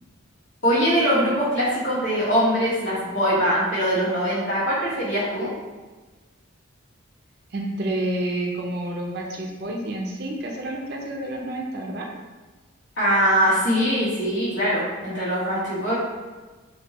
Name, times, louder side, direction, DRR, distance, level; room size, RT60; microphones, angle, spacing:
voice 1, 0.6-5.5 12.9-15.9, equal, 60° left, -9 dB, 1.5 m, -22 dB
voice 2, 7.5-12.1, right 1 dB, 50° right, 0 dB, 0.5 m, -29 dB
3.5 x 2.7 x 2.9 m, 1.3 s
head